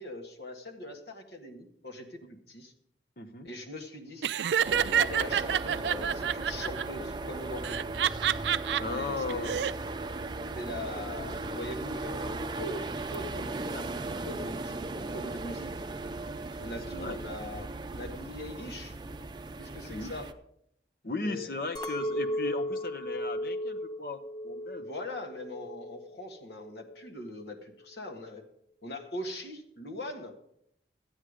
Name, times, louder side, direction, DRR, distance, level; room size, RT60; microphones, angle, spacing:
voice 1, 0.0-2.7 3.4-8.1 8.9-9.5 10.5-15.7 16.6-18.9 19.6-20.3 21.2-21.5 24.8-28.4 28.8-30.3, left 1 dB, 70° left, 4 dB, 1.6 m, -41 dB
voice 2, 3.2-3.5 8.8-9.6 16.9-17.2 19.9-20.1 21.0-24.9, left 3 dB, 55° left, 9 dB, 0.8 m, -36 dB
Laughter, 4.2-6.8 7.6-8.8 9.3-9.7, right 9 dB, 80° right, 0.4 m, -27 dB
sound 1, 4.6-20.3, right 2 dB, 25° right, 0.5 m, -37 dB
Chink clink, 21.8-26.2 26.5-27.1, equal, 25° left, 0.8 m, -35 dB
12.5 x 8.9 x 5.0 m, 0.73 s
head